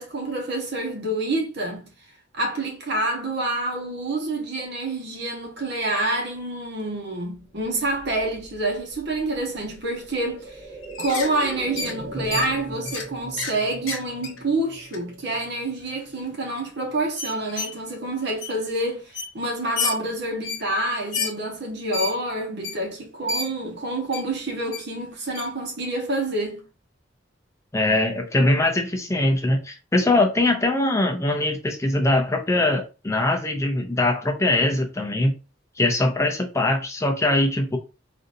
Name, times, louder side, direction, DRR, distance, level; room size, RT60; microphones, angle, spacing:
voice 1, 0.0-1.9 2.3-10.7 11.0-26.6, right 2 dB, 60° right, 1.1 m, -27 dB
sound 1, 7.2-17.0 17.4-17.5, right 1 dB, 25° right, 1.9 m, -40 dB
sound 2, 10.8-11.3 11.8-11.9 12.3-12.5 12.9-13.1 13.4-13.6 13.9-14.4 14.9-15.0 15.8-15.9 16.2-16.3 17.2-17.9 18.4-18.5 18.8-18.9 19.1-19.3 19.8-20.0 20.4-20.6 21.1-21.3 21.9-22.1 22.6-22.8 23.3-23.5 24.1-24.2 24.7-24.8 25.3-25.5, left 4 dB, 80° left, 0.9 m, -29 dB
voice 2, 27.7-35.3 35.8-37.8, left 2 dB, 15° left, 0.4 m, -22 dB
3.8 x 2.5 x 2.6 m
head